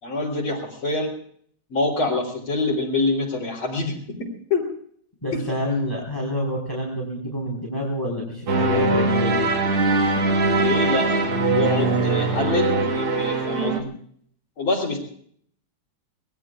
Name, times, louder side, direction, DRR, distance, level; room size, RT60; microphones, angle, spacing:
voice 1, 0.0-1.1 1.7-4.7 5.3-5.4 10.6-13.9 14.6-15.0, left 3 dB, 85° left, -5 dB, 4.5 m, -26 dB
voice 2, 5.2-9.5, left 1 dB, 10° left, -3 dB, 4.7 m, -28 dB
sound 1, 8.5-13.8, right 3 dB, 90° right, 2.7 m, -21 dB
26.0 x 20.5 x 2.5 m, 0.62 s
omnidirectional pair, 2.3 m